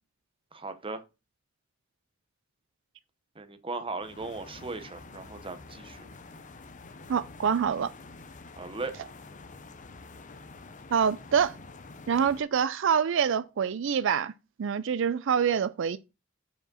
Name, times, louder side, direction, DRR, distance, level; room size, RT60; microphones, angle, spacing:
voice 1, 0.5-1.0 3.4-6.1 8.6-8.9, right 3 dB, 25° right, 0.8 m, -37 dB
sound 1, 4.0-12.4, left 3 dB, 40° left, 0.7 m, -48 dB
voice 2, 7.1-7.9 10.9-11.6 12.1-14.3 14.6-16.0, right 7 dB, 70° right, 0.4 m, -26 dB
5.1 x 4.8 x 6.2 m
head